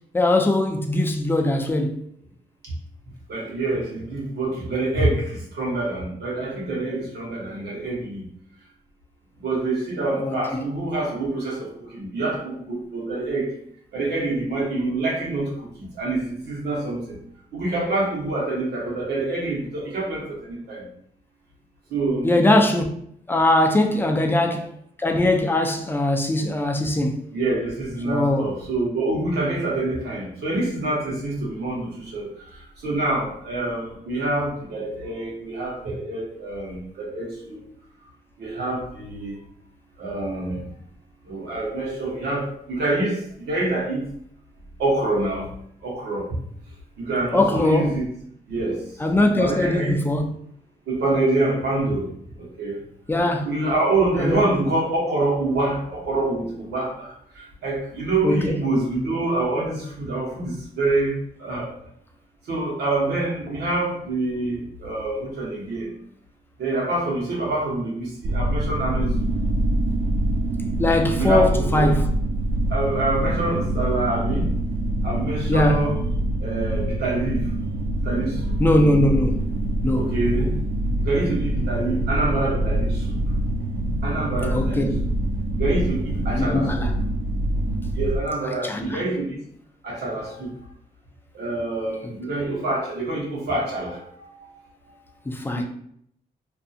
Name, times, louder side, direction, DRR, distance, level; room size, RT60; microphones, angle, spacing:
voice 1, 0.1-2.0 10.2-10.4 22.2-22.9 23.3-24.7 25.0-27.3 28.1-28.5 47.3-48.0 49.0-50.3 53.1-53.5 54.2-54.4 58.2-58.6 70.8-72.1 75.5-75.9 78.6-79.4 79.8-80.1 84.5-84.9 86.3-86.9 88.6-89.0 95.3-95.6, left 1 dB, 15° left, 0.4 m, -21 dB
voice 2, 3.3-8.2 9.4-13.5 13.9-15.7 15.9-17.2 17.5-20.2 20.5-20.8 21.9-22.3 23.9-24.2 27.3-32.3 32.8-37.6 38.4-39.3 40.0-40.6 41.3-44.0 44.8-45.5 45.8-46.2 47.0-48.1 48.5-48.8 49.4-50.0 50.9-52.0 52.4-52.8 53.4-57.1 57.6-61.7 62.5-65.9 66.6-69.3 71.2-71.9 72.7-74.4 75.0-76.0 76.4-77.4 78.0-78.5 79.9-80.5 81.0-83.2 84.0-84.9 85.6-86.9 87.9-89.4 89.8-90.5 91.3-94.0 95.6-95.7, right 2 dB, 85° right, 1.0 m, -26 dB
sound 1, 68.2-88.2, right 1 dB, 55° right, 0.4 m, -25 dB
2.6 x 2.3 x 2.7 m
cardioid pair, 80°, 17 cm